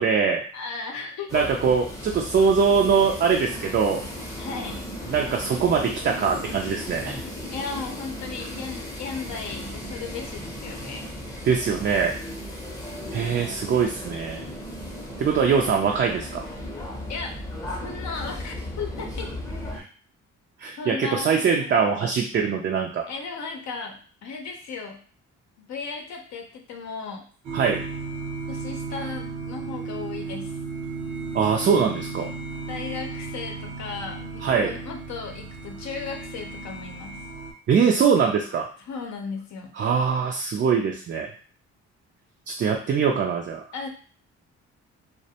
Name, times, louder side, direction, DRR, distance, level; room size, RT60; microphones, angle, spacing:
voice 1, 0.0-0.4 1.3-4.0 5.1-7.2 11.4-12.1 13.1-14.4 15.2-16.4 19.7-19.9 20.6-23.0 27.5-27.8 31.3-32.3 34.4-34.7 37.7-38.7 39.8-41.3 42.5-43.6, right 6 dB, 40° right, 1 dB, 0.4 m, -22 dB
voice 2, 0.5-1.5 4.4-4.8 7.5-11.1 17.1-17.4 17.6-19.3 20.8-21.9 23.1-25.0 25.7-27.3 28.5-30.5 32.7-37.2 38.9-39.7 43.7-43.9, left 5 dB, 65° left, 2 dB, 0.6 m, -35 dB
sound 1, 1.3-19.8, left 1 dB, 10° left, 0.6 m, -36 dB
sound 2, 27.4-37.5, right 4 dB, 75° right, 0.7 m, -35 dB
2.3 x 2.1 x 2.7 m, 0.43 s
cardioid pair, 90°, 30 cm